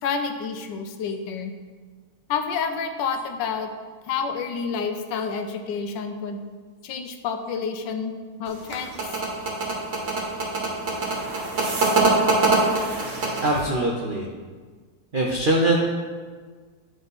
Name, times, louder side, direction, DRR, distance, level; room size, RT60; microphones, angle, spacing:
voice 1, 0.0-1.5 2.3-3.7 4.1-6.4 6.8-9.0, left 5 dB, 85° left, 7 dB, 1.3 m, -29 dB
sound 1, 8.5-13.6, right 3 dB, 50° right, 1.3 m, -23 dB
voice 2, 13.4-14.3 15.1-15.8, right 1 dB, 80° right, -1 dB, 0.4 m, -22 dB
9.5 x 3.7 x 4.0 m, 1.5 s
omnidirectional pair, 1.9 m